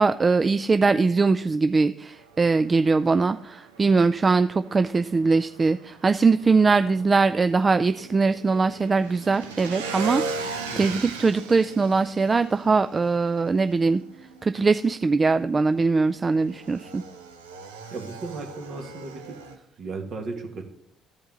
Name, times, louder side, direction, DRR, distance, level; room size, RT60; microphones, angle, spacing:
voice 1, 0.0-14.0 14.4-17.0, right 4 dB, 30° right, 11 dB, 0.3 m, -21 dB
Motorcycle / Engine, 2.1-19.5, right 4 dB, 80° right, 0.7 m, -39 dB
voice 2, 10.7-11.1 17.9-19.2 19.6-20.6, right 3 dB, 55° right, 3 dB, 1.6 m, -35 dB
14.0 x 5.2 x 3.8 m, 0.71 s
figure-of-eight pair, 50°, 0 cm